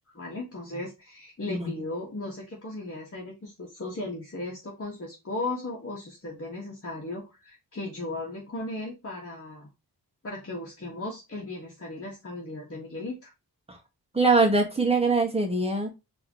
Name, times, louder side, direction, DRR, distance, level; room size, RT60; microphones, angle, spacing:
voice 1, 0.1-9.7 10.2-13.3, left 2 dB, 35° left, -3 dB, 1.4 m, -36 dB
voice 2, 1.5-1.8 13.7-13.8 14.1-15.9, right 3 dB, 15° right, 2 dB, 1.3 m, -23 dB
4.8 x 3.0 x 2.9 m, 0.25 s
wide cardioid pair, 90°, 38 cm